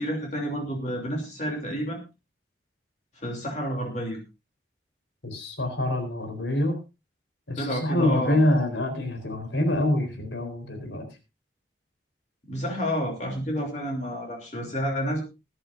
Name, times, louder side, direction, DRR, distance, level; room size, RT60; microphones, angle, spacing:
voice 1, 0.0-2.0 3.1-4.2 7.6-8.4 12.5-15.2, equal, 40° left, 0 dB, 3.1 m, -30 dB
voice 2, 5.2-6.8 7.5-11.1, left 1 dB, 85° left, 7 dB, 4.2 m, -26 dB
21.0 x 11.0 x 2.6 m, 0.27 s
head